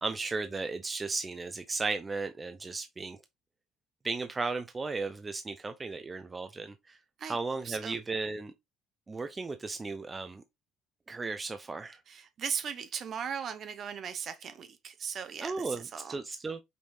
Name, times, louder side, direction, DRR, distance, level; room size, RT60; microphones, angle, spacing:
voice 1, 0.0-3.2 4.0-7.0 7.3-8.5 9.1-10.4 11.1-12.0 15.4-16.6, right 3 dB, 25° right, 0.5 m, -35 dB
voice 2, 7.6-8.0 12.1-16.2, right 7 dB, 50° right, 0.8 m, -38 dB
5.3 x 3.1 x 2.6 m
supercardioid pair, 70°, 0 cm